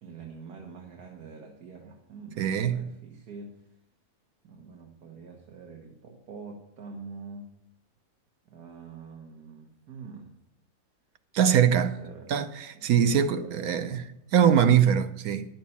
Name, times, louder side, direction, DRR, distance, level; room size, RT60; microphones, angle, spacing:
voice 1, 0.0-3.6 4.4-7.5 8.5-10.4 11.4-12.3 12.7-14.1, right 4 dB, 90° right, 1.8 m, -45 dB
voice 2, 2.4-2.9 11.3-11.9 12.3-14.0 14.3-15.5, right 8 dB, 75° right, 1.2 m, -22 dB
11.0 x 7.5 x 7.1 m
omnidirectional pair, 1.6 m